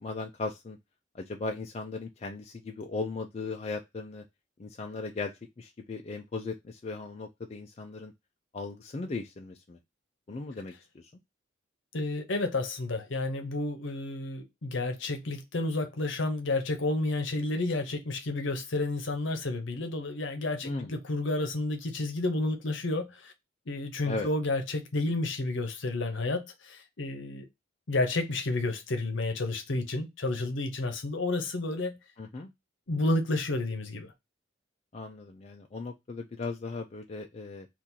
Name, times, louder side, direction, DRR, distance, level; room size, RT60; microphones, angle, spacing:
voice 1, 0.0-0.8 1.1-4.2 4.6-5.3 5.6-8.1 8.5-9.8 10.3-11.1 20.6-21.0 24.0-24.3 32.2-32.5 34.9-37.7, left 3 dB, 35° left, 0.4 m, -37 dB
voice 2, 11.9-23.3 23.7-27.5 27.9-32.0 32.9-34.1, left 2 dB, 70° left, 0.8 m, -31 dB
2.9 x 2.5 x 3.7 m
head